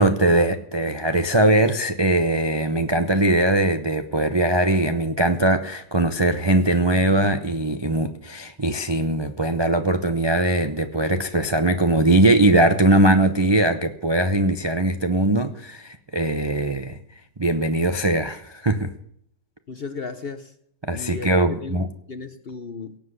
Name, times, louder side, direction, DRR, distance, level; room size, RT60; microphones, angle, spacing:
voice 1, 0.0-17.0 17.4-18.9 20.8-21.9, right 1 dB, 40° right, 8 dB, 0.3 m, -20 dB
voice 2, 19.7-20.5 21.0-21.3 21.6-23.0, left 4 dB, 45° left, 11 dB, 0.8 m, -35 dB
18.0 x 7.8 x 8.0 m, 0.69 s
omnidirectional pair, 1.9 m